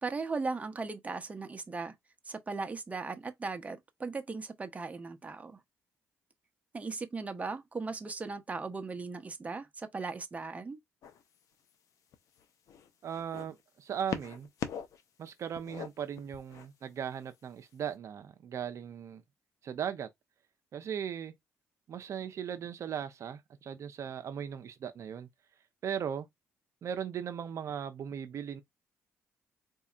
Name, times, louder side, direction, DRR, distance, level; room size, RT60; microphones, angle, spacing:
voice 1, 0.0-1.9 2.3-5.6 6.7-10.8, right 4 dB, 25° right, 0.7 m, -38 dB
sound 1, 11.0-11.4 12.1-13.5 14.1-15.0 15.3-16.7 17.6-17.7, left 8 dB, 70° left, 0.7 m, -40 dB
voice 2, 13.0-14.5 15.2-19.2 19.6-20.1 20.7-21.3 21.9-25.3 25.8-26.3 26.8-28.6, right 8 dB, 60° right, 0.5 m, -38 dB
4.1 x 2.7 x 2.3 m
cardioid pair, 80°, 6 cm